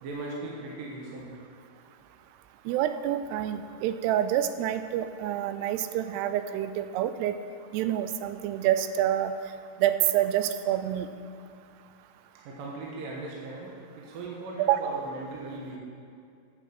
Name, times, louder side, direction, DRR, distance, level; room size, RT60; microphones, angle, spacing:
voice 1, 0.0-1.3 12.5-15.8, right 2 dB, 65° right, -3 dB, 2.6 m, -38 dB
voice 2, 2.7-7.4 7.7-9.3 9.8-11.1 14.6-15.0, right 11 dB, 85° right, 11 dB, 2.7 m, -27 dB
9.1 x 7.3 x 7.7 m, 2.4 s
omnidirectional pair, 4.8 m